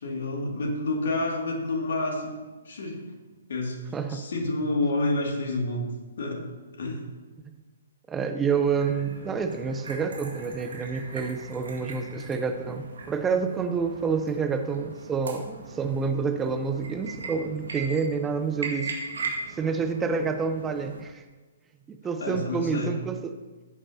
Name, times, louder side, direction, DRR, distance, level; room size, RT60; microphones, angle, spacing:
voice 1, 0.0-3.0 3.5-3.8 4.1-5.9 6.2-6.4 6.7-7.1 22.2-23.0, left 2 dB, 60° left, 1 dB, 2.3 m, -29 dB
voice 2, 3.9-4.2 8.1-18.9 19.6-21.2 21.9-23.4, right 5 dB, 15° right, 7 dB, 0.7 m, -28 dB
sound 1, 8.5-21.0, right 4 dB, 65° right, 2.0 m, -39 dB
15.5 x 8.6 x 2.8 m, 1.3 s
figure-of-eight pair, 125°, 0 cm